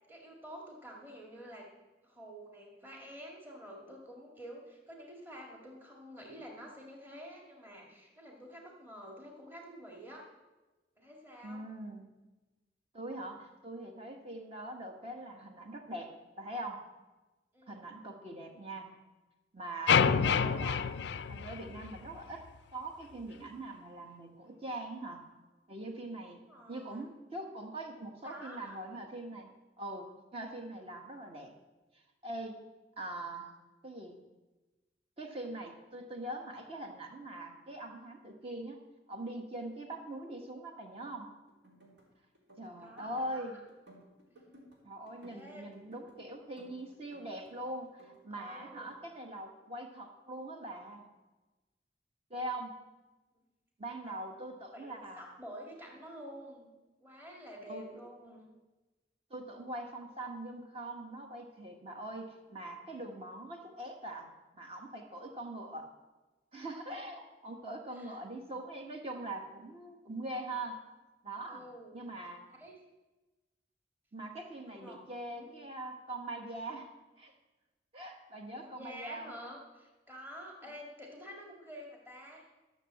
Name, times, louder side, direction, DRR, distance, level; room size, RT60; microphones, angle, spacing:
voice 1, 0.1-1.7 2.0-10.3 11.0-11.7 17.5-17.8 26.5-27.0 28.2-28.8 42.8-43.6 45.2-45.7 48.3-48.9 53.4-53.5 54.0-54.2 54.7-56.7 57.0-58.4 67.9-68.2 71.5-72.0 72.5-72.8 74.7-75.5 78.5-82.5, equal, 15° right, -2 dB, 2.0 m, -49 dB
voice 2, 11.4-12.1 12.9-16.8 17.7-18.9 19.5-20.9 21.3-22.4 22.7-25.2 25.7-31.5 32.2-32.6 33.0-33.5 33.8-34.2 35.2-38.8 39.1-41.3 42.6-43.6 44.8-51.1 52.3-52.7 53.8-55.2 57.7-57.9 59.3-65.9 66.5-70.8 71.2-71.7 71.9-72.5 74.1-76.9 77.2-77.3 77.9-79.3 80.6-80.7, right 1 dB, 35° right, 3 dB, 1.6 m, -42 dB
sound 1, 19.9-22.2, left 6 dB, 75° left, 0.4 m, -28 dB
sound 2, 41.5-42.1 42.3-43.4 43.7-44.8 45.1-46.2 46.6-47.6 47.8-49.0, right 1 dB, 80° right, 3.9 m, -58 dB
13.5 x 7.0 x 7.6 m, 1.1 s
head